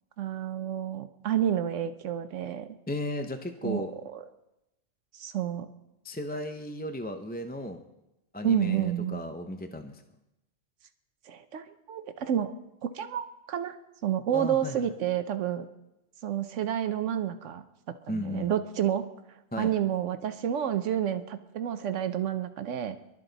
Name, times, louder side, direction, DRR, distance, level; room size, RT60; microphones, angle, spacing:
voice 1, 0.2-2.7 3.6-3.8 4.1-4.2 5.1-5.7 8.4-9.2 11.3-12.5 12.9-13.8 14.0-15.7 16.2-17.6 18.1-19.0 19.6-23.0, right 10 dB, 80° right, 10 dB, 1.1 m, -29 dB
voice 2, 2.9-3.9 6.0-7.8 8.3-10.0 14.3-14.9 18.1-18.5 19.5-19.7, left 1 dB, 10° left, 6 dB, 0.5 m, -35 dB
23.0 x 12.5 x 4.0 m, 0.90 s
omnidirectional pair, 1.3 m